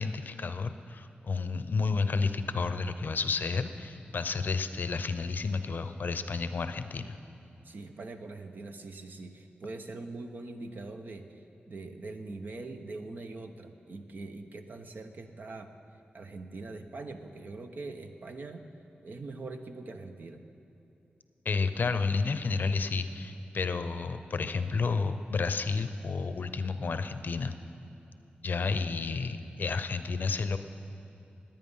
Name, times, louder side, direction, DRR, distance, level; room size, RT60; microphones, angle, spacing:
voice 1, 0.0-7.2 21.4-27.5 28.4-30.6, left 4 dB, 60° left, 10 dB, 0.6 m, -31 dB
voice 2, 7.6-11.4 11.7-15.8 16.1-18.7 19.0-20.4, right 3 dB, 55° right, 6 dB, 0.9 m, -42 dB
19.5 x 9.1 x 5.6 m, 2.9 s
wide cardioid pair, 105°, 4 cm